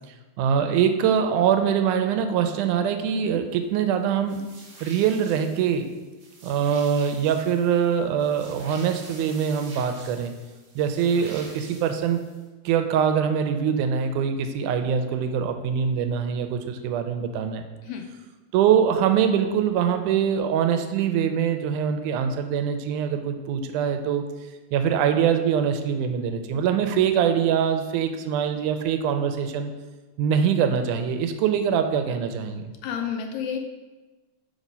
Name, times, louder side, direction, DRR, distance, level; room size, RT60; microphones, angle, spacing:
voice 1, 0.4-4.4 4.8-5.9 6.4-10.3 10.8-12.2 12.7-17.6 18.5-24.3 24.7-29.7 30.2-32.7, right 8 dB, 85° right, 7 dB, 2.0 m, -23 dB
sound 1, 4.3-12.4, right 2 dB, 45° right, 1.6 m, -47 dB
voice 2, 32.8-33.6, left 7 dB, 75° left, 3 dB, 1.6 m, -31 dB
6.1 x 4.2 x 5.4 m, 1.2 s
omnidirectional pair, 3.5 m